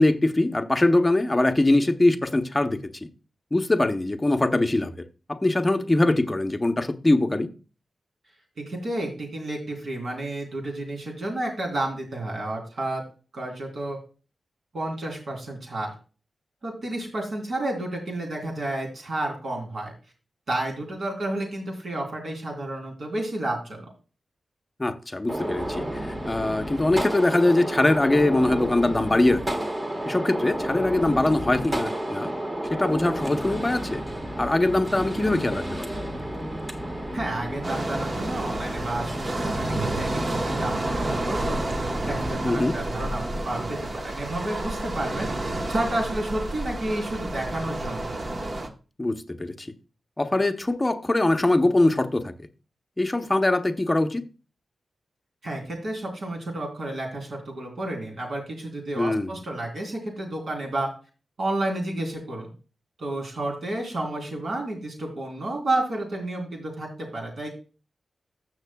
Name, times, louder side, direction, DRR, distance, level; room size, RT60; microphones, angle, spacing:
voice 1, 0.0-2.8 3.5-4.9 5.3-7.5 24.8-25.8 26.2-29.4 30.0-32.3 32.7-34.0 34.4-35.9 42.4-42.8 49.0-49.7 50.2-52.3 53.0-54.2 58.9-59.3, left 2 dB, 15° left, 0.8 m, -22 dB
voice 2, 8.6-13.0 13.3-14.0 14.7-15.9 16.6-19.9 20.5-23.9 37.1-41.6 42.0-48.1 55.4-60.9 61.4-62.5 63.0-67.5, right 1 dB, 60° right, 3.3 m, -31 dB
Gunshot gunfire, 25.3-42.3, right 1 dB, 20° right, 1.3 m, -32 dB
sound 1, 37.6-48.7, right 2 dB, 35° right, 1.0 m, -30 dB
15.0 x 6.5 x 2.3 m
wide cardioid pair, 140°, 0 cm